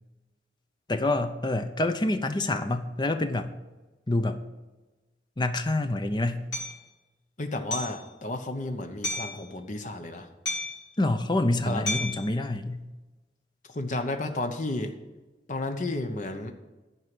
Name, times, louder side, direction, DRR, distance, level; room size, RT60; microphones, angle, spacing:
voice 1, 0.9-3.5 4.1-4.4 5.4-6.5 11.0-12.8, left 2 dB, 25° left, 8 dB, 0.6 m, -27 dB
Hammer, 6.5-6.7 7.7-8.0 9.0-9.4 10.5-10.9 11.9-12.2, left 1 dB, 85° left, 2.9 m, -31 dB
voice 2, 7.4-10.3 11.7-11.9 13.7-14.9 15.5-16.5, left 2 dB, 40° left, 6 dB, 0.9 m, -32 dB
11.0 x 4.7 x 7.6 m, 1.1 s
head